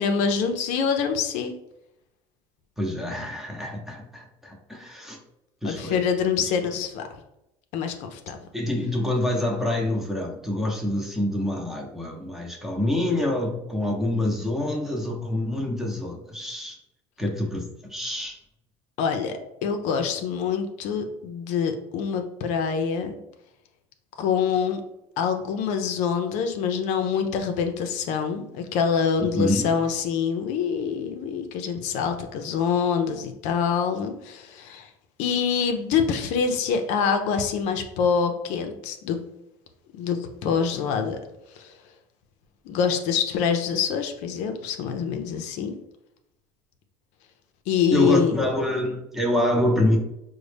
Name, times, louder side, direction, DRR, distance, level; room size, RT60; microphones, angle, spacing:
voice 1, 0.0-1.6 5.6-7.1 7.7-8.4 19.0-23.2 24.2-24.8 25.2-34.9 35.2-39.2 39.9-41.2 41.5-41.7 42.7-45.8 47.7-48.4, left 6 dB, 70° left, 6 dB, 0.5 m, -25 dB
voice 2, 2.8-5.2 5.6-6.0 8.5-16.8 17.2-18.4 29.3-29.7 47.9-50.0, left 1 dB, 5° right, 0 dB, 0.7 m, -26 dB
3.9 x 2.1 x 3.3 m, 0.84 s
supercardioid pair, 105°, 13 cm